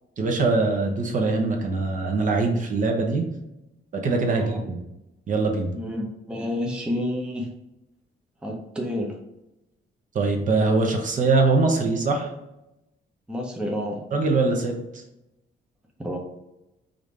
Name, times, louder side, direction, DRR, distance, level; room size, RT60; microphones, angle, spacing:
voice 1, 0.2-3.2 3.9-4.8 5.3-5.7 10.1-12.3 14.1-14.7, right 3 dB, 45° right, 2 dB, 0.7 m, -22 dB
voice 2, 4.2-4.7 5.7-7.5 8.4-9.2 13.3-14.0 16.0-16.2, left 1 dB, 5° right, -1 dB, 0.6 m, -30 dB
5.0 x 2.5 x 3.2 m, 0.90 s
cardioid pair, 145°, 19 cm